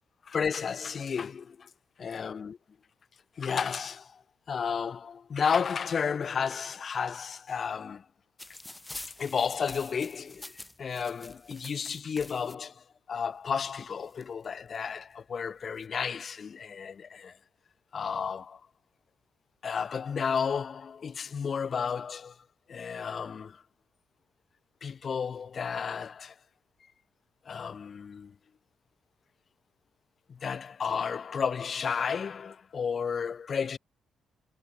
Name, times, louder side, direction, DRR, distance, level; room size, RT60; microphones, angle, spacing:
voice 1, 0.2-1.7 2.0-2.6 3.4-4.2 4.5-8.1 9.2-17.4 17.9-18.6 19.6-22.4 22.7-23.6 24.8-26.3 27.5-28.3 30.3-33.8, left 6 dB, 45° left, 0.8 m, -32 dB
sound 1, 8.4-12.5 13.5-13.6 13.8-14.8 15.5-15.8, left 1 dB, 10° left, 3.3 m, -46 dB
cardioid pair, 90°, 0 cm